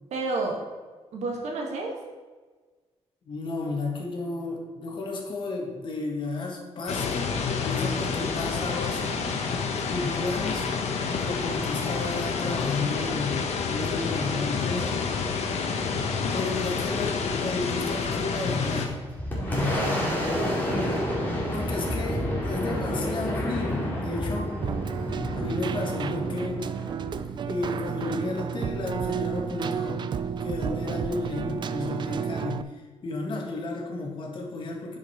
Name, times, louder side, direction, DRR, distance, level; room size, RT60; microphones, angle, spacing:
voice 1, 0.1-0.6 1.1-2.0 19.3-21.0, right 3 dB, 85° right, 0 dB, 1.9 m, -32 dB
voice 2, 3.3-9.2 9.9-10.7 11.2-15.0 16.3-19.0 19.5-20.1 21.5-24.5 25.3-26.7 27.5-30.1 30.4-35.0, left 3 dB, 45° left, 0 dB, 1.8 m, -33 dB
sound 1, 6.9-18.9, left 5 dB, 75° left, 1.1 m, -28 dB
Boom, 18.7-28.0, equal, 15° left, 2.4 m, -30 dB
Keyboard (musical), 24.6-32.6, right 7 dB, 45° right, 0.3 m, -31 dB
9.6 x 5.3 x 4.4 m, 1.4 s
wide cardioid pair, 140°, 11 cm